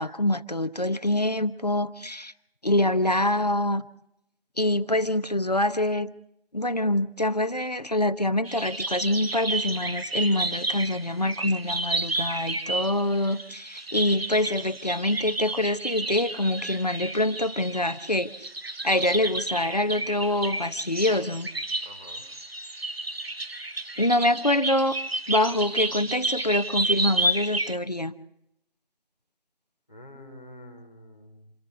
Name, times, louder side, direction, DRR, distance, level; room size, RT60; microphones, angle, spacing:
voice 1, 0.0-2.3 2.6-3.8 4.6-6.1 6.5-18.5 18.8-21.5 24.0-25.0 25.3-28.1, left 1 dB, 45° left, 11 dB, 0.9 m, -25 dB
sound 1, 8.4-27.8, right 2 dB, 80° right, 1.3 m, -31 dB
voice 2, 21.8-22.2 29.9-31.5, left 1 dB, 10° left, -5 dB, 1.6 m, -47 dB
28.0 x 14.0 x 8.2 m, 0.77 s
figure-of-eight pair, 170°, 30 cm